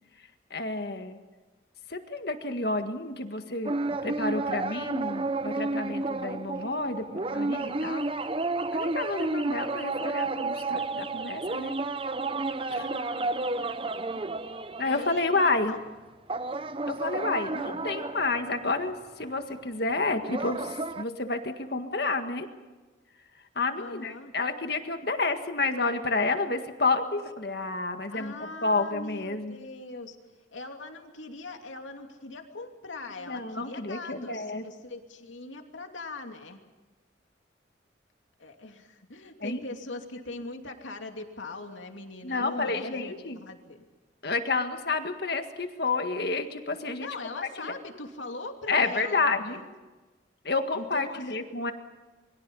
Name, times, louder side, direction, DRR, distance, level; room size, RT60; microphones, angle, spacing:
voice 1, 0.5-1.2 1.9-3.7 4.0-8.1 8.7-11.8 12.7-12.9 14.8-15.7 16.9-22.5 23.6-28.3 28.6-29.6 33.2-34.6 39.4-39.6 42.2-43.4 44.2-47.1 47.6-47.7 48.7-49.6 50.5-51.7, left 3 dB, 55° left, 6 dB, 1.8 m, -30 dB
sound 1, 3.7-15.5 16.3-19.3 20.2-21.0, right 3 dB, 30° right, 0.7 m, -31 dB
voice 2, 12.7-13.2 14.8-15.8 23.7-24.3 28.1-30.2 30.5-36.6 38.4-43.8 47.0-49.7 50.7-51.3, left 2 dB, 90° left, 4 dB, 2.8 m, -41 dB
28.0 x 23.5 x 5.5 m, 1.2 s
head